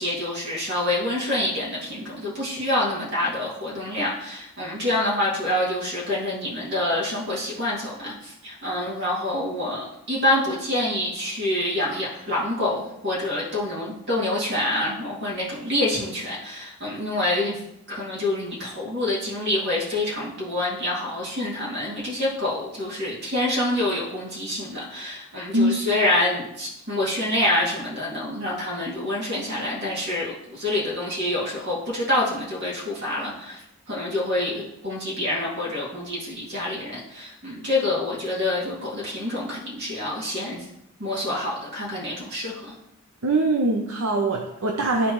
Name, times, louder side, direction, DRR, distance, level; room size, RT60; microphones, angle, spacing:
voice 1, 0.0-17.6 17.9-33.6 33.9-40.7 41.0-42.7, left 1 dB, 50° right, -5 dB, 2.5 m, -27 dB
voice 2, 43.2-45.1, right 2 dB, 65° right, 1 dB, 0.8 m, -22 dB
12.5 x 4.2 x 3.1 m, 0.83 s
head